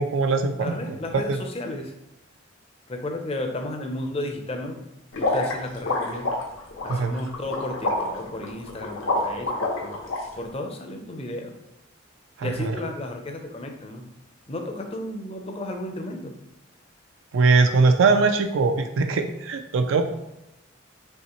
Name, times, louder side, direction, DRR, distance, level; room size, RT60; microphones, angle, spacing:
voice 1, 0.0-0.8 1.1-1.4 6.9-7.1 12.4-12.7 17.3-20.0, right 4 dB, 75° right, 7 dB, 0.4 m, -21 dB
voice 2, 0.6-1.9 2.9-4.9 5.2-6.3 6.8-10.0 10.3-11.5 12.4-14.0 14.5-16.3, left 1 dB, 30° left, 4 dB, 0.5 m, -33 dB
sound 1, 5.1-10.2, left 2 dB, 85° left, 0.9 m, -27 dB
5.5 x 3.2 x 3.0 m, 0.87 s
head